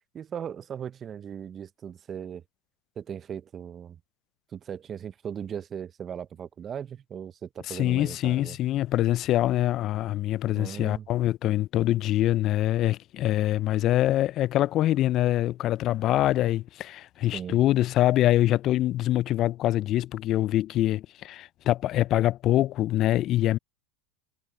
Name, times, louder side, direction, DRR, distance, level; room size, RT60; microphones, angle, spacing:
voice 1, 0.1-2.4 3.0-4.0 4.5-8.6 10.5-11.1 17.3-17.6, right 8 dB, 30° right, 0.7 m, -38 dB
voice 2, 7.7-23.6, left 14 dB, 45° left, 0.3 m, -24 dB
hypercardioid pair, 110°, 0 cm